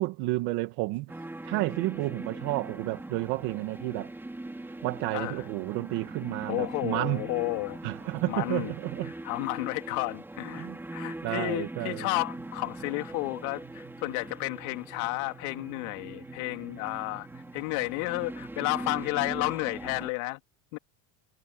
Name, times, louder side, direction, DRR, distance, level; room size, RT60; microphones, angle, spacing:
voice 1, 0.0-4.1 4.8-7.2 7.8-9.1 10.5-10.8 11.2-12.1, right 20 dB, 60° right, 1.8 m, -31 dB
sound 1, 1.1-20.1, right 2 dB, 5° right, 4.3 m, -41 dB
voice 2, 5.1-5.4 6.5-7.8 8.3-8.7 9.2-10.7 10.9-17.3 17.5-20.4 20.7-20.8, left 24 dB, 85° left, 2.7 m, -32 dB
sound 2, 11.8-19.3, right 8 dB, 25° right, 5.8 m, -53 dB
cardioid pair, 175°, 42 cm